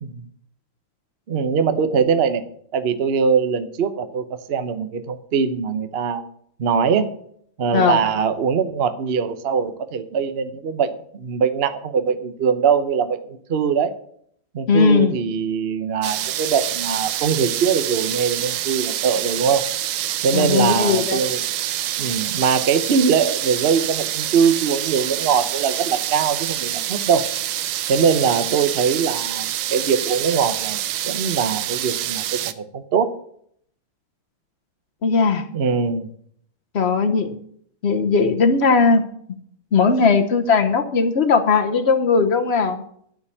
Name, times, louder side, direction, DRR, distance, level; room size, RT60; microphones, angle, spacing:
voice 1, 1.3-2.4 2.7-6.2 6.6-7.1 7.6-13.9 14.5-19.7 20.2-21.4 22.0-27.2 27.9-33.1 35.5-36.1, right 6 dB, 65° right, 10 dB, 0.5 m, -22 dB
voice 2, 14.7-15.1 20.3-21.2 35.0-35.5 36.7-37.4 37.8-39.0 39.7-42.8, left 5 dB, 65° left, 6 dB, 0.6 m, -18 dB
sound 1, 16.0-32.5, right 13 dB, 90° right, 1.6 m, -26 dB
11.5 x 5.2 x 8.4 m, 0.65 s
omnidirectional pair, 2.4 m